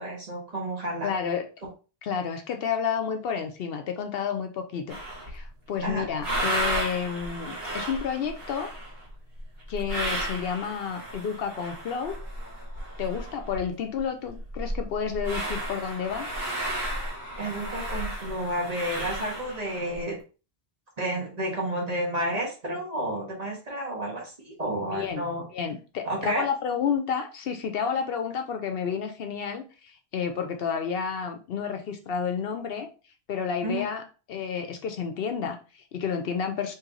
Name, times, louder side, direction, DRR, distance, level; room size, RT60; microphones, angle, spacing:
voice 1, 0.0-1.1 5.8-6.1 17.4-20.2 21.0-25.4 26.0-26.4 33.6-33.8, right 1 dB, 40° right, -1 dB, 1.2 m, -31 dB
voice 2, 1.0-1.5 2.0-5.0 5.3-8.7 9.7-12.2 13.0-16.3 24.8-25.2 25.5-32.9 33.3-34.0 34.3-36.7, left 7 dB, 70° left, 6 dB, 0.8 m, -30 dB
sound 1, 4.9-5.5 5.9-13.7 13.9-14.0 14.3-20.0, right 1 dB, 65° right, 1.6 m, -33 dB
3.1 x 2.9 x 3.7 m, 0.34 s
omnidirectional pair, 1.1 m